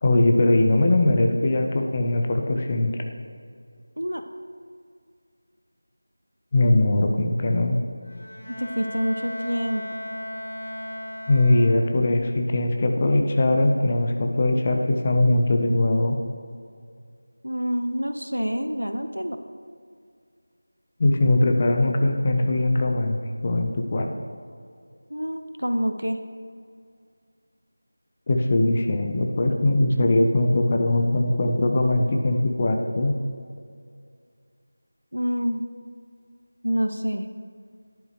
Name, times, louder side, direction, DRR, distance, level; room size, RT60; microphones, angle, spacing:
voice 1, 0.0-2.9 6.5-7.8 11.3-16.2 21.0-24.1 28.3-33.1, left 2 dB, 25° left, 4 dB, 0.5 m, -21 dB
Bowed string instrument, 8.0-12.1, left 1 dB, 60° left, 2.0 m, -36 dB
voice 2, 8.6-9.8 17.4-19.4 25.1-26.2 35.1-35.6 36.6-37.3, equal, 80° right, 8 dB, 0.7 m, -27 dB
10.5 x 8.3 x 3.2 m, 2.2 s
figure-of-eight pair, 170°, 0 cm